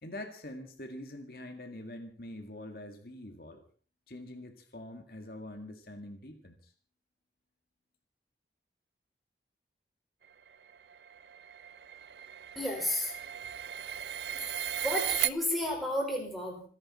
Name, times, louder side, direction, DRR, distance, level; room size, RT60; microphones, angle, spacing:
voice 1, 0.0-3.6 4.1-6.7, left 1 dB, 55° left, 5 dB, 2.1 m, -44 dB
sound 1, 10.5-15.3, right 11 dB, 75° right, 0.6 m, -36 dB
voice 2, 12.5-13.1 14.8-16.6, left 1 dB, ahead, -1 dB, 5.1 m, -32 dB
27.5 x 10.5 x 4.4 m, 0.42 s
head